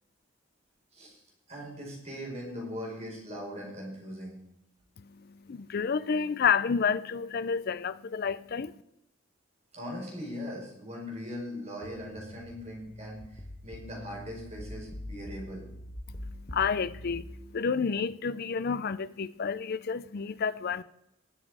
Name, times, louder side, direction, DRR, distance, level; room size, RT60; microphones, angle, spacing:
voice 1, 0.9-1.2 1.5-4.4 9.7-15.7, equal, 30° right, 4.7 m, -40 dB
voice 2, 5.0-8.7 16.1-20.8, left 6 dB, 45° left, 0.4 m, -30 dB
sound 1, 11.8-17.2, left 1 dB, 30° left, 1.2 m, -43 dB
19.5 x 7.4 x 4.8 m
head